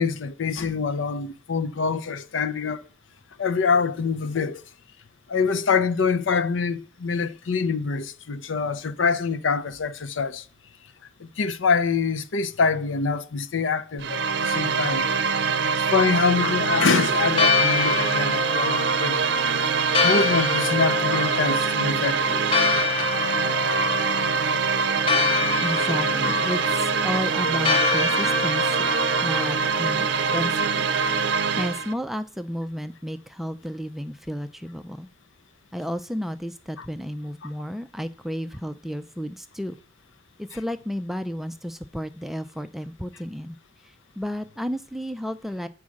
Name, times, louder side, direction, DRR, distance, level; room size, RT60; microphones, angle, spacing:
voice 1, 0.0-2.8 3.4-4.6 5.3-10.5 11.2-15.1 15.9-19.2 19.7-22.5 36.8-36.9 37.4-37.5, left 5 dB, 80° left, 0.6 m, -25 dB
sound 1, 14.0-31.9, right 5 dB, 65° right, 0.6 m, -24 dB
Church bell, 17.2-31.3, left 5 dB, 25° left, 0.8 m, -27 dB
voice 2, 25.6-30.1 30.3-30.9 31.5-35.1 35.7-39.8 40.4-43.6 43.8-45.7, equal, ahead, 0.3 m, -32 dB
8.4 x 4.6 x 6.3 m
head